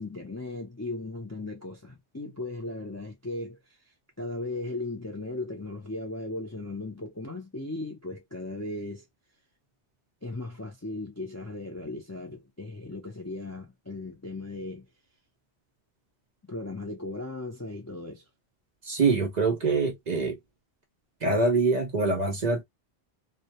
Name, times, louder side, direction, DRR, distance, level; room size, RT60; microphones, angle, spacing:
voice 1, 0.0-3.6 4.2-9.1 10.2-14.9 16.5-18.2, left 2 dB, 30° left, 0.3 m, -37 dB
voice 2, 18.8-20.4 21.2-22.6, right 3 dB, 55° right, 0.6 m, -24 dB
2.2 x 2.1 x 2.7 m
omnidirectional pair, 1.1 m